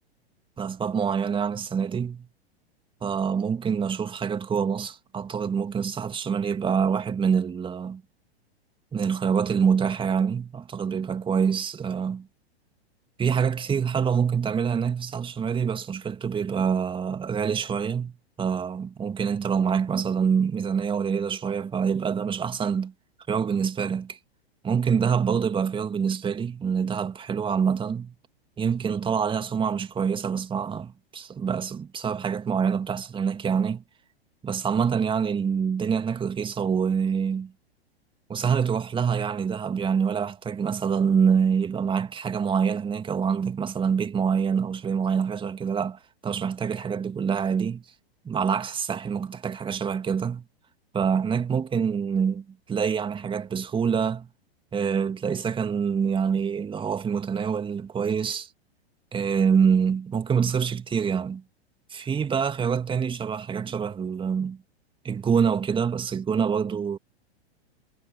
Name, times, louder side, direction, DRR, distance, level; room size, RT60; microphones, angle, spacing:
voice 1, 0.6-2.2 3.0-8.0 8.9-12.3 13.2-22.9 23.3-24.2 24.6-28.1 28.6-33.8 34.4-37.5 38.3-47.8 48.2-50.4 50.9-54.3 54.7-58.5 59.1-61.4 61.9-64.6 65.0-67.0, right 6 dB, 15° right, 2.5 m, -26 dB
figure-of-eight pair, 100°, 32 cm